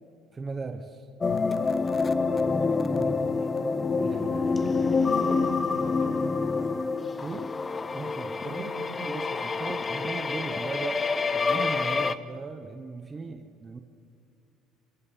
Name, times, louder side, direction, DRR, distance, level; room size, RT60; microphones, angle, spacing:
voice 1, 0.3-1.1 2.9-3.2 4.0-4.1 7.2-7.5 7.9-8.7 9.0-13.8, right 4 dB, 20° right, 6 dB, 1.1 m, -37 dB
sound 1, 1.2-12.2, left 4 dB, 20° left, 0.6 m, -27 dB
voice 2, 3.0-3.5 3.9-7.0 8.4-9.1, right 4 dB, 75° right, -1 dB, 7.3 m, -43 dB
28.0 x 24.0 x 5.7 m, 2.5 s
cardioid pair, 140°, 0 cm